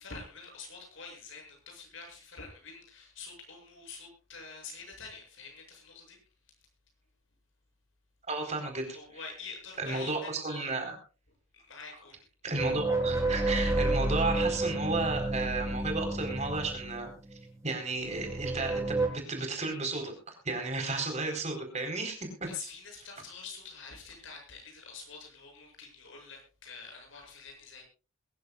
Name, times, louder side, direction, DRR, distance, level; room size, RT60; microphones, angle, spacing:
voice 1, 0.0-6.2 8.8-10.7 11.5-12.2 22.5-27.8, left 4 dB, 65° left, 2 dB, 8.0 m, -46 dB
voice 2, 8.3-9.0 9.8-11.0 12.4-17.1 17.6-20.1 20.4-22.5, right 3 dB, 30° right, 4 dB, 4.3 m, -33 dB
sound 1, 12.5-17.5 18.0-19.1, right 2 dB, 15° right, 4.0 m, -30 dB
22.5 x 14.5 x 2.5 m, 0.35 s
head